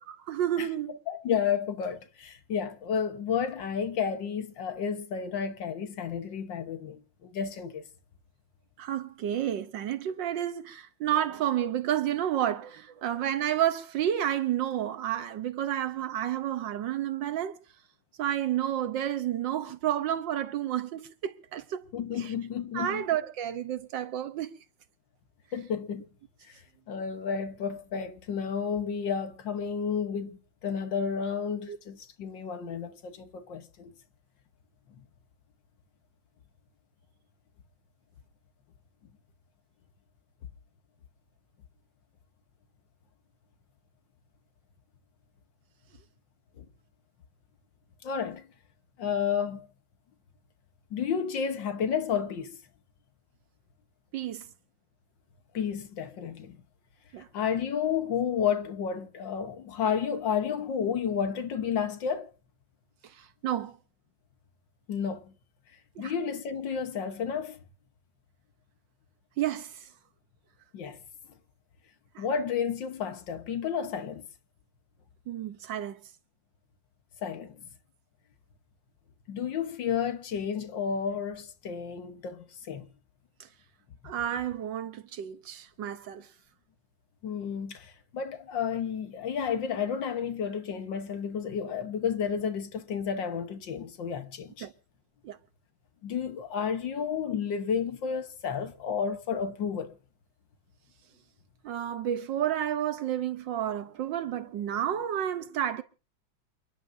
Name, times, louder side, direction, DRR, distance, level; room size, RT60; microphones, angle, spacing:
voice 1, 0.1-1.0 8.8-17.6 18.2-21.9 22.2-22.3 22.7-24.5 31.7-31.8 54.1-54.5 57.1-57.3 63.2-63.8 66.0-66.1 69.4-69.9 72.1-72.2 75.3-76.0 83.4-83.5 84.0-86.3 94.6-94.7 95.2-95.4 101.6-105.8, right 11 dB, 65° right, 1.4 m, -30 dB
voice 2, 1.1-7.8 21.9-23.0 25.5-26.1 26.5-26.6 26.9-33.9 46.6-46.7 48.0-48.5 49.0-49.7 50.9-52.6 55.5-56.6 57.3-62.3 64.9-65.3 66.0-67.6 70.7-71.0 72.2-74.3 77.2-77.6 79.3-82.9 87.2-94.7 96.0-100.0, left 7 dB, 65° left, 1.8 m, -31 dB
28.5 x 11.0 x 2.7 m
omnidirectional pair, 2.3 m